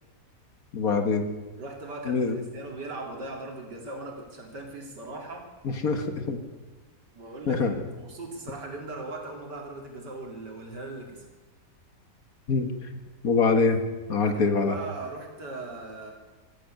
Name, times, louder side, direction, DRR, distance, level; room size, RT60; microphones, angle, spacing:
voice 1, 0.7-1.3 2.1-2.4 5.6-6.4 7.5-7.8 12.5-12.7 13.2-13.8 14.1-14.8, left 4 dB, 60° left, 7 dB, 1.9 m, -24 dB
voice 2, 1.6-5.5 7.1-11.3 14.2-16.1, right 2 dB, 85° right, 1 dB, 3.6 m, -39 dB
15.5 x 14.0 x 6.6 m, 1.3 s
omnidirectional pair, 1.8 m